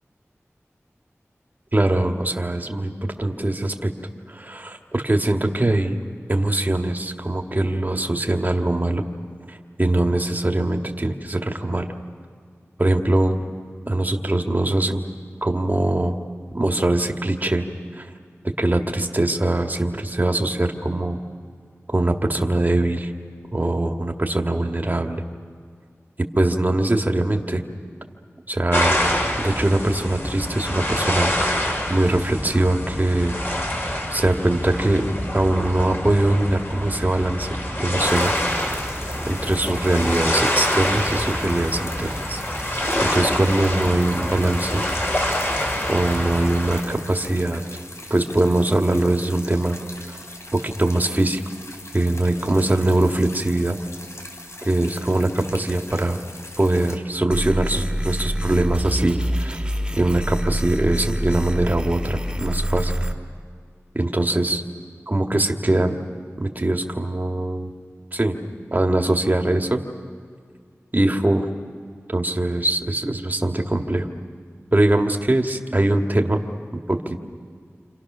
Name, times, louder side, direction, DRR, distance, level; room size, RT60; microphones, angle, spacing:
voice 1, 1.7-3.9 4.3-6.0 6.3-9.0 9.5-11.9 12.8-13.4 13.9-15.0 15.4-16.2 16.5-17.6 17.9-18.1 18.6-21.2 21.9-23.1 23.5-25.2 26.3-27.6 28.5-29.0 29.4-31.6 31.9-33.4 34.1-35.0 35.3-37.5 37.8-38.3 39.3-42.4 43.0-44.8 45.9-47.6 48.1-49.8 50.1-50.2 50.5-51.4 51.9-53.8 54.6-56.2 56.6-59.6 60.0-62.9 63.9-64.6 65.1-65.9 66.4-67.7 68.1-68.4 68.7-69.8 70.9-71.5 72.1-74.1 74.7-76.4 76.9-77.2, right 1 dB, 35° right, 3 dB, 2.0 m, -22 dB
sound 1, 28.7-46.8, left 1 dB, 45° left, 5.0 m, -26 dB
sound 2, 38.0-57.0, left 1 dB, 65° left, 3.5 m, -41 dB
sound 3, 57.3-63.1, equal, 15° right, 2.2 m, -26 dB
29.0 x 27.5 x 6.3 m, 2.1 s
wide cardioid pair, 45°, 5 cm